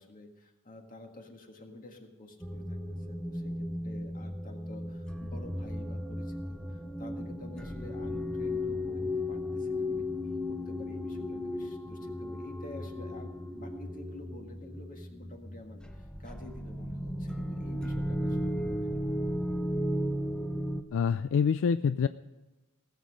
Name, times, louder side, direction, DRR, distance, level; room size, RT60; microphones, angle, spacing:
voice 1, 0.0-2.8 3.1-19.6, left 2 dB, 40° left, 3 dB, 1.7 m, -50 dB
sound 1, 2.4-20.8, left 1 dB, 5° left, 0.6 m, -35 dB
voice 2, 20.9-22.1, left 6 dB, 65° left, 13 dB, 0.3 m, -26 dB
17.0 x 7.4 x 6.3 m, 1.1 s
head